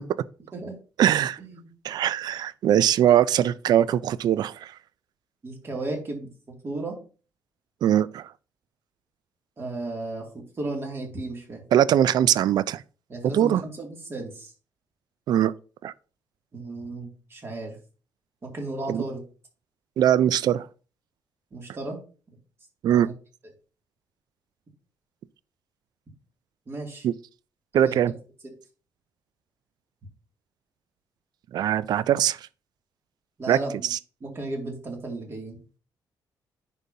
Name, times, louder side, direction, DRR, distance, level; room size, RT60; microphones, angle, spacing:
voice 1, 1.0-1.4 1.8-4.7 7.8-8.3 11.7-12.8 13.2-13.6 15.3-15.5 15.8-15.9 18.9-19.0 20.0-20.7 22.8-23.1 27.0-27.1 27.7-28.1 31.5-32.5 33.5-34.0, right 10 dB, 60° right, 0.3 m, -21 dB
voice 2, 5.4-7.0 9.6-11.6 13.1-14.5 16.5-17.8 18.4-19.2 21.5-22.0 22.9-23.1 26.7-27.1 27.8-28.0 33.4-33.9 34.2-35.6, right 2 dB, 30° right, 2.3 m, -34 dB
10.0 x 5.4 x 2.7 m
cardioid pair, 135°, 8 cm